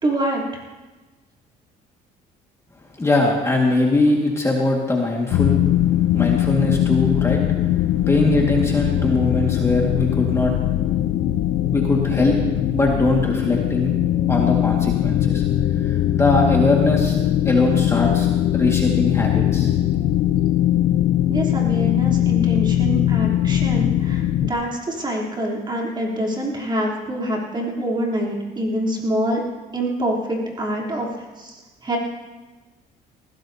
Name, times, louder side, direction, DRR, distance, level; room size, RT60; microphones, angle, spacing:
voice 1, 0.0-0.4 21.3-29.4 29.7-32.0, right 1 dB, 25° right, -2 dB, 3.4 m, -25 dB
voice 2, 3.0-5.6 6.1-7.5 8.1-10.5 11.7-12.4 12.7-13.9 14.3-15.4 15.8-17.2 17.5-18.3 18.5-19.7, left 2 dB, 15° left, -1 dB, 1.9 m, -21 dB
sound 1, 5.3-24.5, left 12 dB, 75° left, 0.7 m, -20 dB
20.0 x 16.0 x 2.8 m, 1.2 s
cardioid pair, 110°, 17 cm